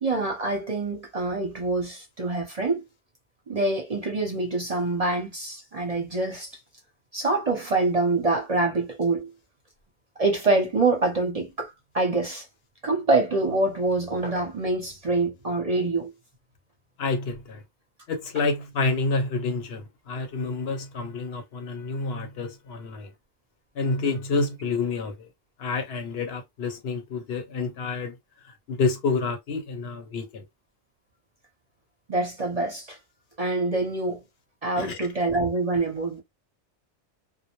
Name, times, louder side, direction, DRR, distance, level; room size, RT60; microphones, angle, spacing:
voice 1, 0.0-2.8 3.5-6.5 7.1-9.3 10.2-12.4 12.8-16.1 32.1-33.0 33.4-34.2 34.6-36.2, right 2 dB, 40° right, 0.7 m, -25 dB
voice 2, 17.0-17.6 18.1-23.1 23.8-25.3 25.6-28.1 28.7-30.4 34.8-35.0, left 3 dB, 65° left, 0.8 m, -28 dB
2.1 x 2.1 x 2.9 m
omnidirectional pair, 1.2 m